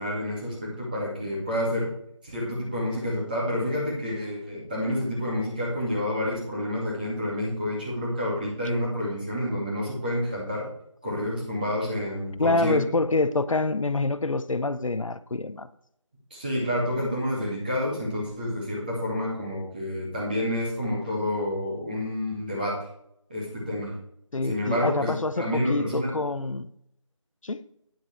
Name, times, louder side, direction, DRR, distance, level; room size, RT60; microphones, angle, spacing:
voice 1, 0.0-1.9 2.2-10.7 11.0-12.8 16.3-22.7 23.3-23.9 24.4-26.1, left 1 dB, 15° right, 2.4 m, -29 dB
voice 2, 12.4-15.7 24.3-26.7 27.4-27.6, left 3 dB, 80° left, 0.8 m, -26 dB
9.8 x 6.6 x 4.6 m
figure-of-eight pair, 175°, 17 cm